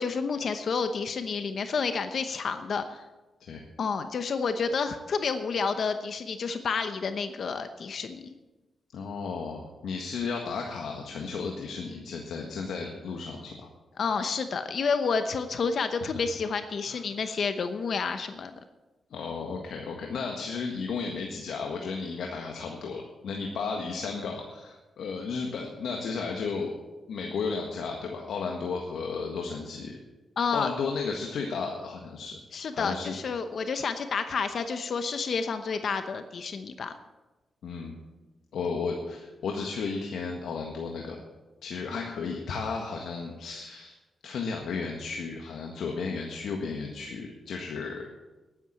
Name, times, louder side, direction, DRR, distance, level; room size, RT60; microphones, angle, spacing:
voice 1, 0.0-3.0 3.8-8.3 14.0-18.6 30.4-30.7 32.5-36.9 41.9-42.1, left 5 dB, 60° left, 9 dB, 0.9 m, -30 dB
voice 2, 8.9-13.7 16.0-16.1 16.9-17.0 19.1-26.7 27.1-30.0 30.5-32.4 32.7-33.1 37.6-38.0 38.5-41.2 41.6-43.9 44.2-48.1, left 5 dB, 85° left, 1 dB, 1.6 m, -34 dB
11.0 x 10.5 x 8.5 m, 1.1 s
cardioid pair, 90°, 0 cm